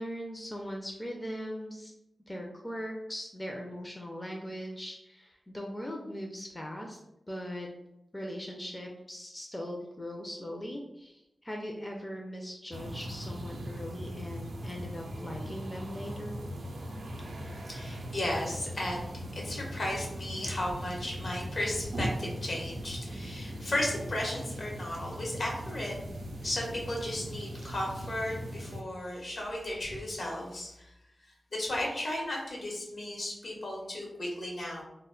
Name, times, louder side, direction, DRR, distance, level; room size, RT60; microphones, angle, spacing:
voice 1, 0.0-1.9 2.3-7.0 7.3-7.7 8.1-16.4, equal, 20° left, 0 dB, 0.4 m, -40 dB
sound 1, 12.7-28.8, equal, 90° right, 0.4 m, -39 dB
voice 2, 17.5-26.1 26.4-30.9 31.2-34.8, left 1 dB, 65° left, -2 dB, 0.9 m, -35 dB
2.1 x 2.1 x 3.7 m, 0.86 s
wide cardioid pair, 80°, 0 cm